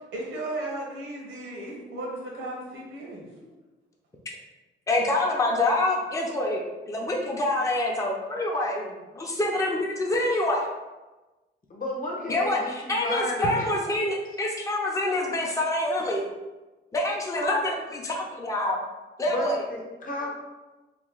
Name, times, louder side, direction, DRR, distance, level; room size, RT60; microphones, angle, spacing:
voice 1, 0.1-3.2, right 2 dB, 80° right, -2 dB, 1.1 m, -35 dB
voice 2, 4.9-10.7 12.3-16.3 16.9-18.8 19.2-19.6, left 1 dB, 15° left, -1 dB, 0.6 m, -26 dB
voice 3, 11.7-13.7 17.4-17.7 19.3-20.3, left 1 dB, 45° left, -1 dB, 0.9 m, -32 dB
3.0 x 2.2 x 3.8 m, 1.1 s
cardioid pair, 90°, 20 cm